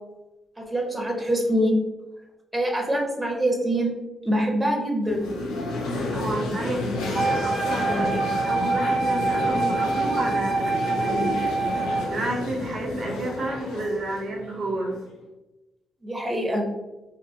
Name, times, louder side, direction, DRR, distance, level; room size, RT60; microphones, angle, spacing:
voice 1, 0.7-1.8 2.5-3.9 4.2-5.2 16.0-16.6, right 1 dB, 20° right, 0 dB, 0.8 m, -24 dB
sound 1, 5.0-15.1, left 2 dB, 90° left, 0.4 m, -30 dB
voice 2, 6.1-11.7 12.1-15.0, right 1 dB, 60° right, -1 dB, 0.6 m, -31 dB
Wind instrument woodwind instrument, 7.1-12.2, right 3 dB, 20° left, 0.5 m, -25 dB
2.6 x 2.5 x 2.6 m, 1.0 s
supercardioid pair, 55°, 0 cm